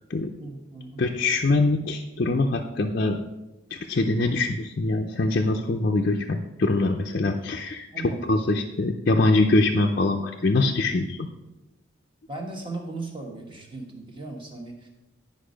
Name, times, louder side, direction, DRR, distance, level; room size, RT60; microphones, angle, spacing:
voice 1, 0.4-1.1 7.9-8.2 12.3-14.9, right 2 dB, 25° right, 2 dB, 1.3 m, -37 dB
voice 2, 1.0-3.2 3.7-7.9 8.2-11.3, left 2 dB, 45° left, 1 dB, 0.5 m, -23 dB
10.0 x 5.3 x 5.1 m, 1.0 s
head